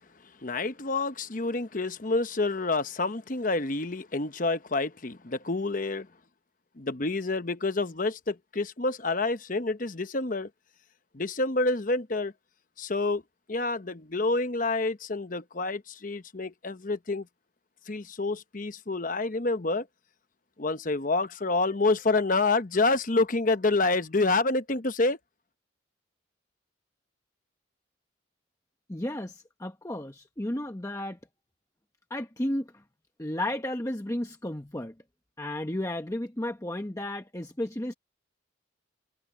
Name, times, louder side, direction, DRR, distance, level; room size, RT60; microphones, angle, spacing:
voice 1, 0.4-6.1 6.8-10.5 11.1-12.3 12.8-13.2 13.5-17.3 17.9-19.9 20.6-25.2, left 3 dB, 40° left, 0.9 m, -28 dB
voice 2, 28.9-31.2 32.1-32.8 33.2-34.9 35.4-37.9, left 1 dB, 15° left, 1.0 m, -33 dB
head